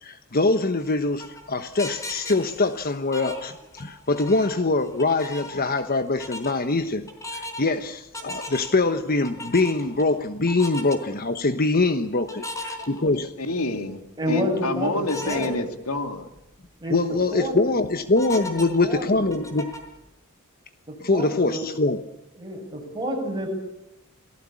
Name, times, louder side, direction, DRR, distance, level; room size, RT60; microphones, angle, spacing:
voice 1, 0.0-13.3 16.9-19.7 21.0-22.0, left 3 dB, 45° left, 9 dB, 1.2 m, -23 dB
sound 1, 0.7-3.9 4.2-5.9 6.2-6.5 7.1-7.7 8.1-8.8 9.2-10.0 10.5-11.0 12.3-13.5 13.9-14.0 15.1-15.5 16.0-16.1 16.4-16.5 17.0-17.3 18.1-20.0, left 1 dB, 15° left, 4.3 m, -37 dB
voice 2, 13.0-14.0 14.3-16.3, left 2 dB, 80° left, 7 dB, 2.4 m, -28 dB
voice 3, 14.2-15.6 16.8-17.0 17.3-17.8 18.8-19.3 20.9-21.7 22.4-23.5, equal, 20° right, 1 dB, 8.0 m, -29 dB
28.5 x 18.5 x 8.6 m, 0.86 s
head